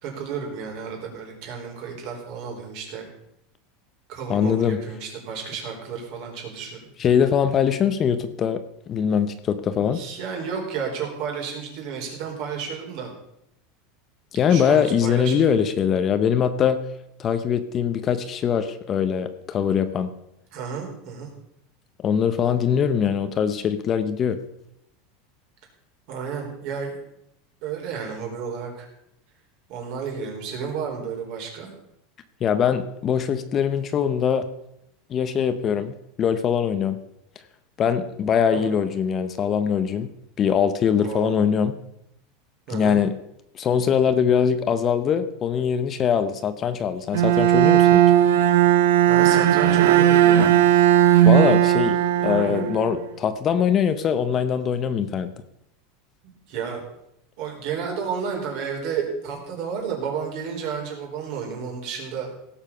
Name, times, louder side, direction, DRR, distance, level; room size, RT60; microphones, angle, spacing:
voice 1, 0.0-3.1 4.1-6.8 9.6-13.1 14.5-15.5 20.5-21.3 26.1-27.0 27.6-28.9 29.7-31.7 38.5-38.7 41.0-41.3 42.7-43.0 49.1-50.5 52.2-52.7 56.5-56.8 57.4-62.3, right 6 dB, 55° right, 1 dB, 4.2 m, -32 dB
voice 2, 4.3-4.8 7.0-10.0 14.3-16.8 17.2-20.1 22.0-24.4 32.4-34.4 35.1-37.0 37.8-40.1 40.4-41.7 42.7-43.2 43.5-48.0 51.3-52.0 52.2-55.3, left 7 dB, 25° left, 11 dB, 0.8 m, -22 dB
Bowed string instrument, 47.1-53.1, right 11 dB, 85° right, 1.0 m, -17 dB
17.0 x 7.2 x 5.6 m, 0.78 s
supercardioid pair, 155°, 0 cm